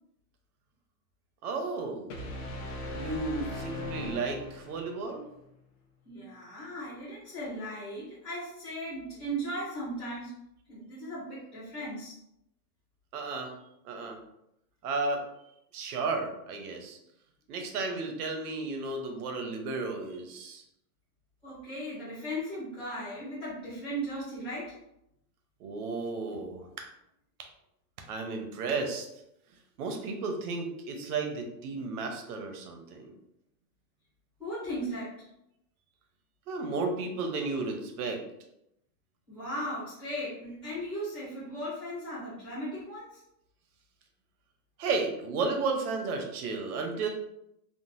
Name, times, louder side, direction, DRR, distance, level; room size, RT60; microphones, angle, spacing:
voice 1, 1.4-2.1 2.9-5.2 13.1-13.5 13.8-14.2 14.8-15.3 15.7-17.0 17.5-20.6 25.6-26.9 28.1-29.1 29.8-33.1 36.5-38.2 44.8-47.1, right 3 dB, 65° right, 4 dB, 0.8 m, -33 dB
sound 1, 2.1-5.0, left 2 dB, 65° left, 0.8 m, -38 dB
voice 2, 6.0-10.4 10.7-12.2 21.4-24.8 34.4-35.3 39.3-43.2, equal, ahead, -13 dB, 0.5 m, -37 dB
3.7 x 2.1 x 2.5 m, 0.81 s
supercardioid pair, 170°, 49 cm